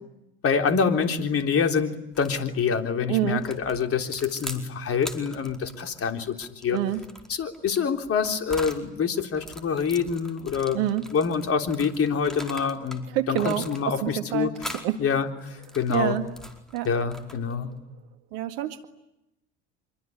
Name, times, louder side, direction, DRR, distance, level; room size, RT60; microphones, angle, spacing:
voice 1, 0.4-6.8 7.3-14.7 15.0-16.2 16.8-17.7, left 6 dB, 40° left, 6 dB, 3.6 m, -26 dB
sound 1, 2.1-2.5 3.4-4.6 5.0-8.8 9.3-13.0 13.3-14.1 14.6-14.9 15.4-17.6, equal, ahead, 4.7 m, -41 dB
voice 2, 3.1-3.4 6.7-7.0 10.7-11.1 13.1-14.5 14.8-15.0 15.9-16.2 16.7-16.9 18.3-18.8, right 12 dB, 65° right, 10 dB, 2.0 m, -27 dB
26.0 x 23.5 x 9.6 m, 0.86 s
hypercardioid pair, 70°, 35 cm